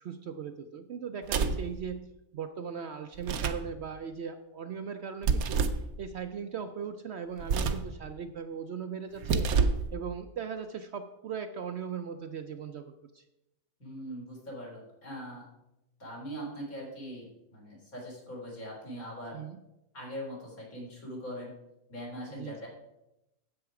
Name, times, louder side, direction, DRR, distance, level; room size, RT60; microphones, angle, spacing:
voice 1, 0.0-9.5 9.9-13.2 19.3-19.6 22.3-22.7, right 7 dB, 65° right, 8 dB, 0.7 m, -39 dB
sound 1, 1.2-1.7 3.1-3.7 5.2-5.9 7.4-7.9 9.1-9.9, right 5 dB, 80° right, 1.2 m, -28 dB
voice 2, 13.8-15.4 16.0-17.3 17.5-19.4 19.9-21.5 21.9-22.7, equal, 75° left, -3 dB, 3.8 m, -41 dB
9.7 x 7.9 x 4.8 m, 0.92 s
omnidirectional pair, 1.5 m